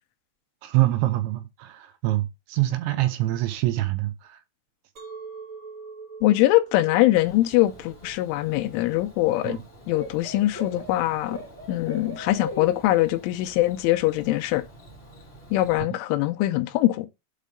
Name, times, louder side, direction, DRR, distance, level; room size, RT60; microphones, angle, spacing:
voice 1, 0.6-4.4 9.5-9.6, right 16 dB, 80° right, 2.8 m, -25 dB
Chink clink, 5.0-10.1, right 5 dB, 35° right, 2.1 m, -44 dB
voice 2, 6.2-9.6 9.9-11.4 11.7-14.6 15.5-17.1, left 16 dB, 85° left, 3.1 m, -22 dB
Bird / Cricket, 7.1-15.8, equal, 55° left, 0.6 m, -42 dB
8.3 x 3.3 x 5.0 m
omnidirectional pair, 5.7 m